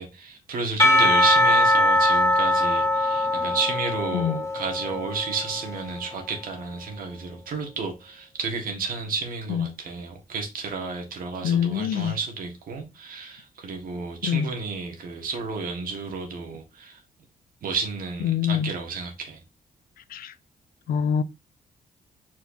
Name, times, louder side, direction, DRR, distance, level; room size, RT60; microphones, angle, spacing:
voice 1, 0.0-17.0 17.6-19.4, right 4 dB, 70° right, 1.6 m, -32 dB
Percussion / Church bell, 0.8-6.0, left 1 dB, 20° left, 1.0 m, -21 dB
voice 2, 11.4-12.2 14.2-14.5 18.2-18.7 20.1-20.3 20.9-21.2, left 8 dB, 80° left, 0.4 m, -25 dB
4.5 x 4.4 x 2.7 m
cardioid pair, 85°, 15 cm